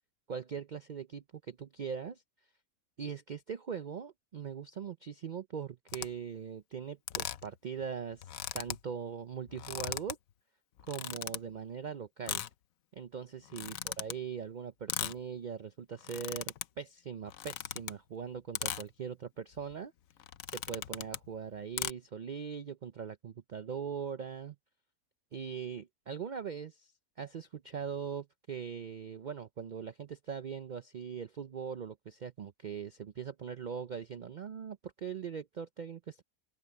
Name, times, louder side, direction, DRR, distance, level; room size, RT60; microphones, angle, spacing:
voice 1, 0.3-2.2 3.0-10.2 10.9-12.4 12.9-19.9 20.5-24.6 25.3-26.9 27.2-36.2, right 7 dB, 65° right, 0.4 m, -41 dB
sound 1, 5.9-6.1 7.1-7.5 7.8-7.9 8.1-8.8 9.5-10.1 10.8-11.4 12.3-12.5 13.5-14.1 14.9-15.2 15.9-16.6 17.3-18.0 18.6-18.8 19.5-19.7 20.2-21.3 21.8-21.9, left 11 dB, 70° left, 1.1 m, -38 dB
open air
omnidirectional pair, 1.5 m